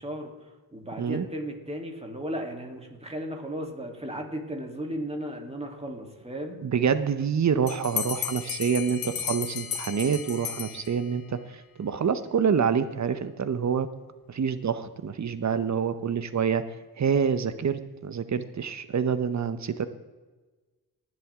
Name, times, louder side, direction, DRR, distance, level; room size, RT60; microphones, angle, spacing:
voice 1, 0.0-6.7, equal, 15° right, 1 dB, 3.2 m, -35 dB
voice 2, 6.6-13.9 14.3-16.6 17.0-19.9, right 7 dB, 45° right, 12 dB, 1.0 m, -27 dB
Bell, 7.7-11.3, left 8 dB, 65° left, 1.2 m, -34 dB
21.0 x 7.8 x 3.7 m, 1.3 s
cardioid pair, 60°, 38 cm